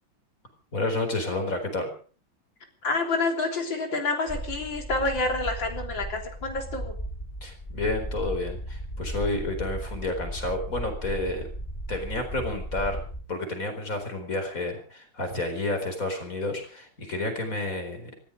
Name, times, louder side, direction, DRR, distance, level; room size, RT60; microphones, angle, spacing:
voice 1, 0.7-1.9 7.4-11.5 11.9-13.0 13.3-18.1, left 2 dB, 45° left, 6 dB, 4.7 m, -30 dB
voice 2, 2.8-7.0, left 3 dB, 75° left, 4 dB, 4.1 m, -28 dB
sound 1, 4.3-13.2, right 1 dB, 20° left, 4.6 m, -36 dB
19.0 x 15.0 x 5.1 m, 0.40 s
omnidirectional pair, 2.1 m